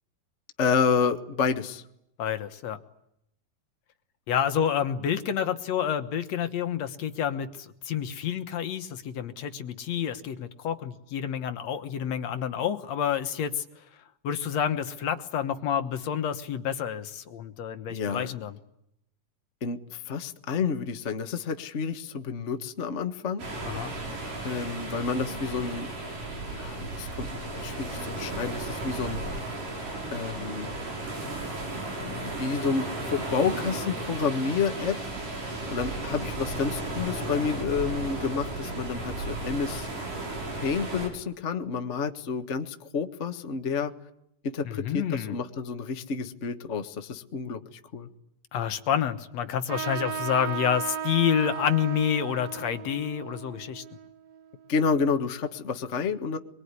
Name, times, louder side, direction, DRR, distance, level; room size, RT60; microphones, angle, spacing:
voice 1, 0.6-1.8 17.9-18.4 19.6-23.4 24.4-25.9 26.5-29.2 30.1-30.7 32.0-35.0 35.7-39.9 40.5-43.9 44.4-48.1 54.7-56.4, left 5 dB, 45° left, 7 dB, 0.9 m, -29 dB
voice 2, 2.2-2.8 4.3-13.7 14.2-18.6 23.6-23.9 44.6-45.4 48.5-53.8, left 9 dB, 60° left, 9 dB, 2.3 m, -29 dB
sound 1, 23.4-41.1, right 2 dB, 90° right, 8.2 m, -34 dB
Trumpet, 49.7-54.7, right 7 dB, 60° right, 1.0 m, -36 dB
25.0 x 23.0 x 9.8 m, 0.77 s
omnidirectional pair, 3.7 m